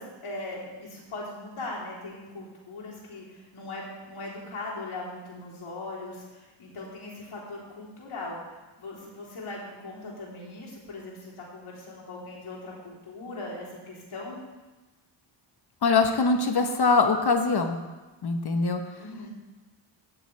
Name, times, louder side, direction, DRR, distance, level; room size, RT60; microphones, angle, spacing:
voice 1, 0.0-8.4 8.8-14.4 19.0-19.3, left 2 dB, 75° left, -5 dB, 3.4 m, -39 dB
voice 2, 15.8-17.8 18.2-18.8, left 4 dB, 50° left, 6 dB, 1.1 m, -23 dB
16.5 x 6.4 x 3.3 m, 1.2 s
wide cardioid pair, 115°, 49 cm